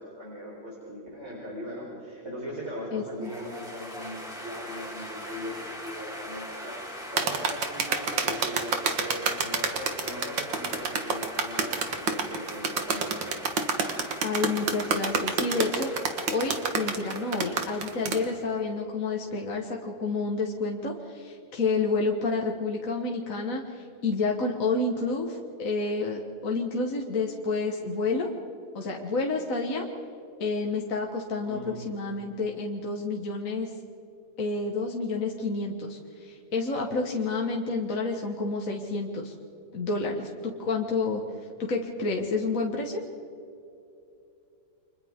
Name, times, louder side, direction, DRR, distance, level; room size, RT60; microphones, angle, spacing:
voice 1, 0.0-6.8 7.1-13.3 14.5-14.6 31.4-32.0, equal, 35° right, -5 dB, 4.7 m, -39 dB
voice 2, 2.9-3.3 14.2-15.9 16.3-28.3 28.7-29.9 30.4-33.7 34.4-39.3 39.7-41.2 41.6-43.0, left 3 dB, 50° left, 0 dB, 1.9 m, -29 dB
sound 1, 3.2-18.7, equal, ahead, 3.3 m, -42 dB
sound 2, 7.2-18.2, right 5 dB, 85° right, 2.3 m, -28 dB
30.0 x 25.5 x 3.7 m, 2.6 s
omnidirectional pair, 2.0 m